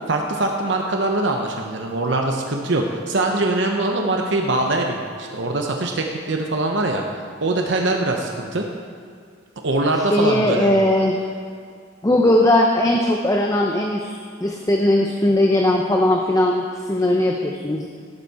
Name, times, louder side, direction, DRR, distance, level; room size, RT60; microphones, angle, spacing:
voice 1, 0.1-7.0 7.4-8.6 9.6-10.7, right 2 dB, 60° right, 2 dB, 0.9 m, -22 dB
voice 2, 10.1-11.2 12.0-17.9, left 1 dB, 15° left, 1 dB, 0.6 m, -19 dB
17.0 x 8.1 x 4.2 m, 2.2 s
head